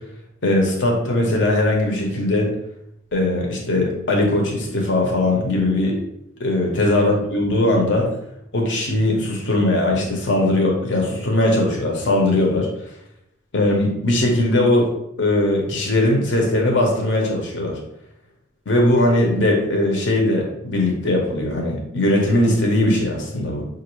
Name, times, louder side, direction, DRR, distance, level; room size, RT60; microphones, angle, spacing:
voice 1, 0.4-2.5 3.1-6.0 6.4-8.1 8.5-12.7 13.5-14.9 15.2-17.8 18.7-23.7, left 1 dB, 65° left, 0 dB, 0.9 m, -19 dB
5.9 x 2.6 x 3.0 m, 0.80 s
head